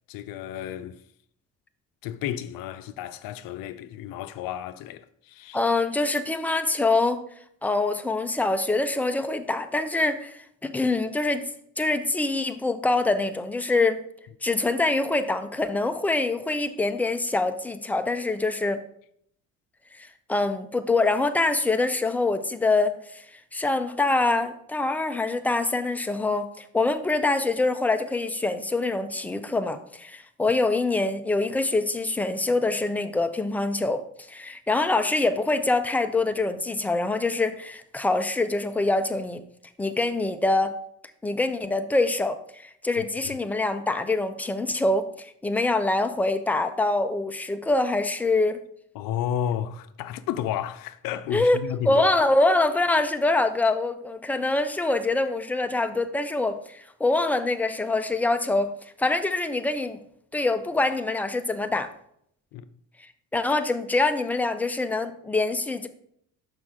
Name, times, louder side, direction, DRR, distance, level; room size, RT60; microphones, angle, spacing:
voice 1, 0.1-1.0 2.0-5.6 43.0-43.4 49.0-52.1 62.5-62.6, left 10 dB, 80° left, 0.6 m, -32 dB
voice 2, 5.5-7.2 7.6-11.5 11.8-14.0 14.4-18.8 19.9-39.4 39.8-40.8 41.2-48.6 51.3-51.6 51.8-58.7 59.0-60.0 60.3-61.9 63.3-65.9, left 2 dB, 5° left, 0.3 m, -25 dB
6.0 x 5.2 x 3.6 m
cardioid pair, 115°, 34 cm